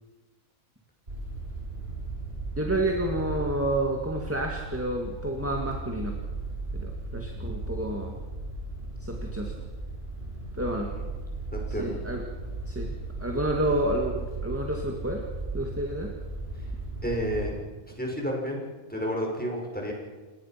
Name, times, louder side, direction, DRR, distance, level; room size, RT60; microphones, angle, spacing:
sound 1, 1.1-17.5, right 2 dB, 45° right, 6.8 m, -36 dB
voice 1, 2.6-6.2 6.7-8.1 9.0-9.6 10.5-10.9 11.8-12.2 12.7-12.9 13.2-15.2 15.5-16.1, right 1 dB, 10° right, 1 dB, 2.1 m, -29 dB
voice 2, 11.5-12.0 16.6-16.7 17.0-17.6 18.0-18.6 18.9-19.9, equal, 5° left, -1 dB, 5.8 m, -31 dB
30.0 x 19.0 x 5.9 m, 1.3 s
omnidirectional pair, 1.4 m